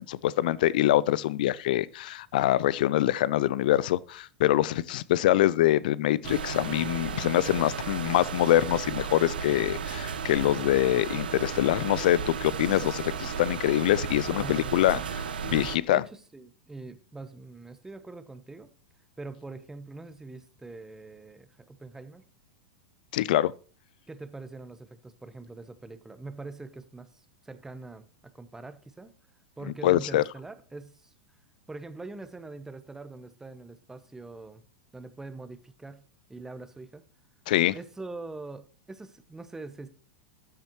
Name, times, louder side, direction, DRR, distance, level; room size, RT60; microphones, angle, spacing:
voice 1, 0.0-15.0 15.4-16.0 23.1-23.5 29.8-30.2 37.5-37.8, left 14 dB, 60° left, 0.5 m, -24 dB
sound 1, 6.2-15.8, right 6 dB, 75° right, 0.8 m, -34 dB
voice 2, 14.3-15.1 15.5-18.7 19.2-22.2 24.1-29.1 29.6-31.1 31.7-34.6 34.9-36.0 36.3-37.0 37.7-39.9, right 3 dB, 10° right, 1.0 m, -43 dB
12.5 x 7.1 x 3.1 m
hypercardioid pair, 95°, 5 cm